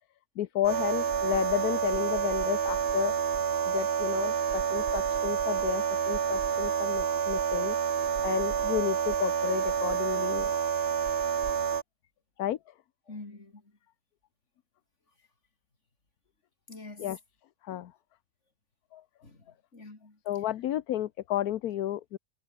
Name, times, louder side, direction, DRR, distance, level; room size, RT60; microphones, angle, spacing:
voice 1, 0.4-3.1 3.6-7.8 8.2-10.5 12.4-12.6 17.0-17.2 17.6-17.9 18.9-19.0 20.3-22.2, left 12 dB, 80° left, 1.3 m, -32 dB
sound 1, 0.6-11.8, right 7 dB, 45° right, 1.0 m, -28 dB
voice 2, 13.1-13.7 16.7-17.2 17.7-17.8 19.2-19.5 19.7-20.2, left 2 dB, 50° left, 4.4 m, -46 dB
omnidirectional pair, 1.6 m